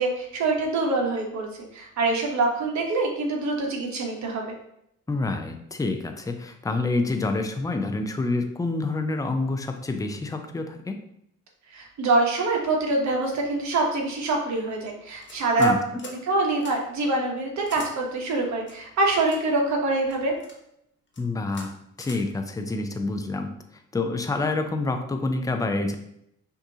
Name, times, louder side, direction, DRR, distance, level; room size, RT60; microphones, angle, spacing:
voice 1, 0.0-1.5 1.7-4.5 11.7-15.7 16.3-20.3, right 2 dB, 65° right, 1 dB, 1.1 m, -25 dB
voice 2, 5.1-11.0 15.6-15.8 21.2-23.5 23.9-26.0, left 3 dB, 10° left, 6 dB, 0.5 m, -27 dB
sound 1, 15.2-15.7 16.0-16.2 16.6-16.7 17.7-17.9 18.7-19.4 20.1-20.6 21.1-21.2 21.5-21.7 22.0-22.2, left 3 dB, 40° left, 1.2 m, -43 dB
5.9 x 2.7 x 2.8 m, 0.76 s
cardioid pair, 90°, 30 cm